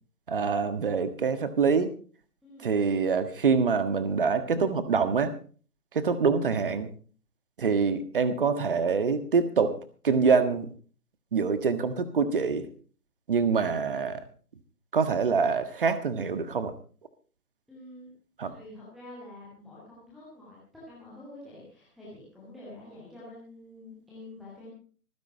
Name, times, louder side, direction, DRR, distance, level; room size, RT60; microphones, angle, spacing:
voice 1, 0.3-1.9 2.6-5.3 5.9-6.9 7.6-9.8 10.0-10.7 11.3-12.7 13.3-14.2 14.9-16.7 18.4-18.5, right 5 dB, 35° right, 11 dB, 1.5 m, -25 dB
voice 2, 2.4-2.7 17.7-18.1 18.4-24.7, left 1 dB, ahead, -7 dB, 0.6 m, -47 dB
26.0 x 10.5 x 2.8 m, 0.40 s
figure-of-eight pair, 145°, 45 cm